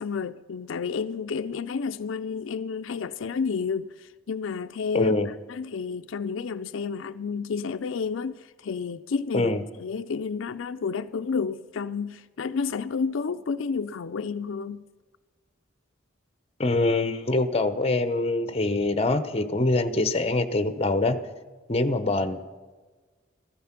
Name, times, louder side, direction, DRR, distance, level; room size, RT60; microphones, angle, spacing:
voice 1, 0.0-3.9 4.3-5.1 5.5-9.5 9.8-14.8, left 5 dB, 80° left, 0.4 m, -30 dB
voice 2, 4.9-5.3 9.3-9.6 16.6-21.2 21.7-22.4, left 2 dB, 30° left, 0.8 m, -24 dB
14.5 x 13.5 x 5.9 m
head